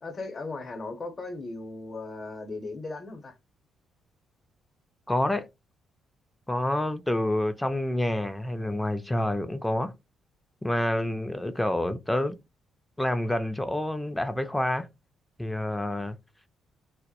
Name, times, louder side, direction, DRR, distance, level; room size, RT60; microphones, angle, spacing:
voice 1, 0.0-3.4 11.3-11.6, left 3 dB, 40° left, 0.7 m, -37 dB
voice 2, 5.1-5.5 6.5-9.9 10.6-12.4 13.0-14.9 15.4-16.2, left 1 dB, 10° left, 0.3 m, -28 dB
2.2 x 2.0 x 2.8 m
cardioid pair, 90°, 0 cm